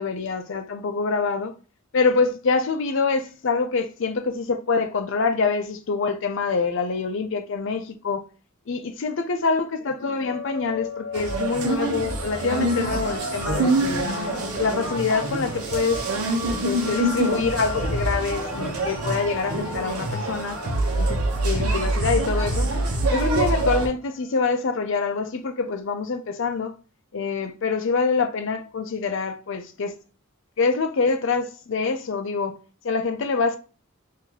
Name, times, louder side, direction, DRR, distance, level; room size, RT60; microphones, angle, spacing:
voice 1, 0.0-1.5 1.9-8.2 8.7-16.1 16.6-20.6 21.0-22.7 23.1-26.7 27.1-29.9 30.6-32.6 32.8-33.6, left 4 dB, 55° left, 0.5 m, -25 dB
sound 1, 10.0-24.7, left 3 dB, 40° left, 1.2 m, -39 dB
sound 2, 11.1-23.9, right 2 dB, 85° right, 0.9 m, -25 dB
3.0 x 2.7 x 3.8 m
head